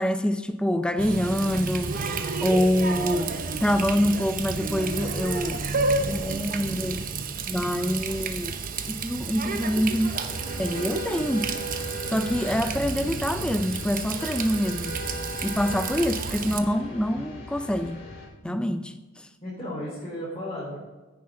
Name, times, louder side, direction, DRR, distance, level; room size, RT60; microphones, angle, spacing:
voice 1, 0.0-5.6 6.1-7.1 7.5-8.5 8.9-10.1 10.6-11.5 12.1-15.0 15.4-18.0 18.4-18.9, equal, 5° left, 0.5 m, -26 dB
Water tap faucet, 1.0-16.6, right 4 dB, 45° right, 0.9 m, -31 dB
sound 1, 9.5-18.3, equal, 65° left, 4.3 m, -38 dB
voice 2, 18.4-18.9 19.4-20.8, equal, 30° left, 4.2 m, -36 dB
14.5 x 10.0 x 3.8 m
head